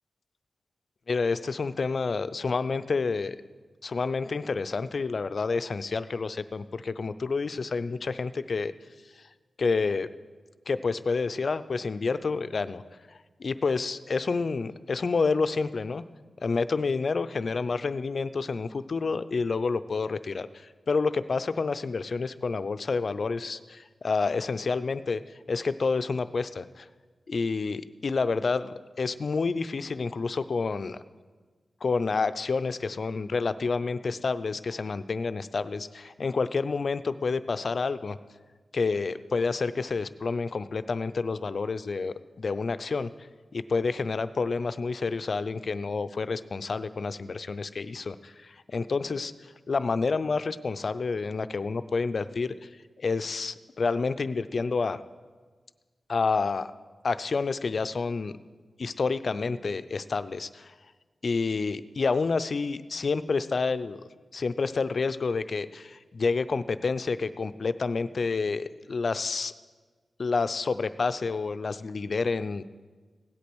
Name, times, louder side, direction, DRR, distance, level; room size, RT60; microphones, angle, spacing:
voice 1, 1.1-3.4 3.8-8.7 9.6-10.1 10.7-12.8 13.4-16.0 16.4-25.2 25.5-26.9 27.3-31.0 31.8-38.2 38.7-43.1 43.5-49.3 49.7-52.5 53.0-55.0 56.1-56.7 57.0-58.3 58.8-60.7 61.2-64.0 64.3-69.5 70.2-72.7, left 4 dB, 65° left, 13 dB, 0.5 m, -29 dB
16.5 x 8.5 x 6.2 m, 1.4 s
cardioid pair, 45°, 0 cm